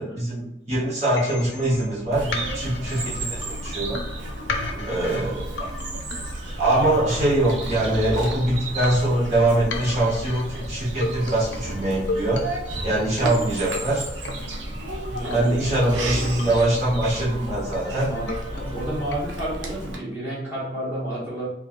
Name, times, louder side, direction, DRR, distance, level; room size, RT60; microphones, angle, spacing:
voice 1, 0.0-4.0 4.9-5.5 6.6-12.4 12.8-14.0 15.1-18.1, right 1 dB, 40° right, -7 dB, 1.0 m, -23 dB
sound 1, 1.2-19.2, left 2 dB, 70° left, 0.4 m, -35 dB
Bird vocalization bird call bird song, 2.1-20.0, right 1 dB, 75° right, 0.5 m, -33 dB
voice 2, 4.7-5.1 15.2-15.7 17.8-21.5, right 1 dB, 10° right, -10 dB, 1.0 m, -31 dB
3.2 x 2.3 x 2.4 m, 0.85 s
head